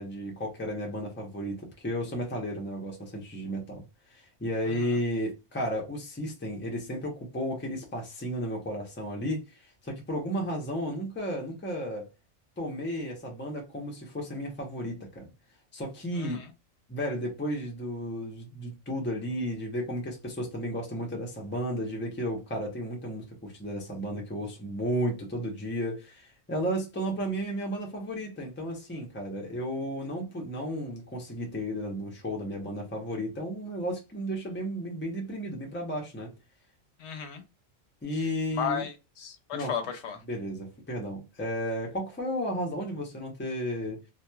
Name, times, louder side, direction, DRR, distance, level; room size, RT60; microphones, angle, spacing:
voice 1, 0.0-3.8 4.1-12.1 12.6-15.3 15.7-16.4 16.9-36.3 38.0-38.8 39.5-39.7 40.3-44.0, equal, 15° left, 0.5 m, -33 dB
voice 2, 4.7-5.0 16.2-16.5 37.0-37.4 38.5-40.2, left 8 dB, 70° left, 0.8 m, -34 dB
2.9 x 2.3 x 2.2 m
omnidirectional pair, 1.2 m